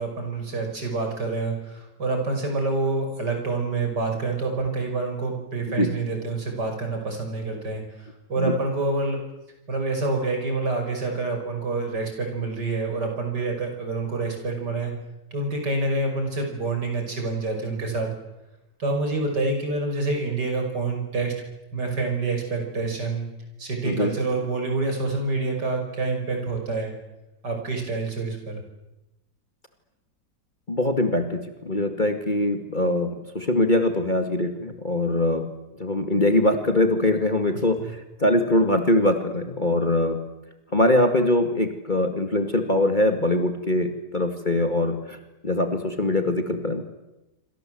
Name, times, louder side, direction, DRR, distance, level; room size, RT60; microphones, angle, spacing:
voice 1, 0.0-9.2 9.7-14.9 15.3-18.1 18.8-21.3 21.7-23.3 23.6-26.9 27.4-28.6 37.8-37.9, right 3 dB, 60° right, 3 dB, 6.4 m, -27 dB
voice 2, 30.7-35.5 35.8-40.2 40.7-45.2 45.4-46.8, left 1 dB, 25° left, 6 dB, 2.2 m, -22 dB
27.0 x 26.0 x 7.8 m, 0.97 s
omnidirectional pair, 2.0 m